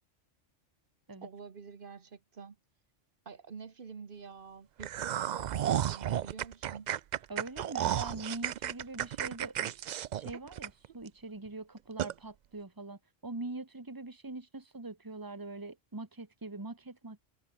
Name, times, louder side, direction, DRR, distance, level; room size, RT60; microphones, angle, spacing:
voice 1, 1.2-2.6 3.2-6.9, right 5 dB, 45° right, 1.3 m, -48 dB
sound 1, 4.8-11.1 11.5-11.6 12.0-12.1, right 10 dB, 70° right, 0.4 m, -33 dB
voice 2, 7.3-9.8 10.2-17.2, right 2 dB, 15° right, 1.8 m, -43 dB
omnidirectional pair, 1.3 m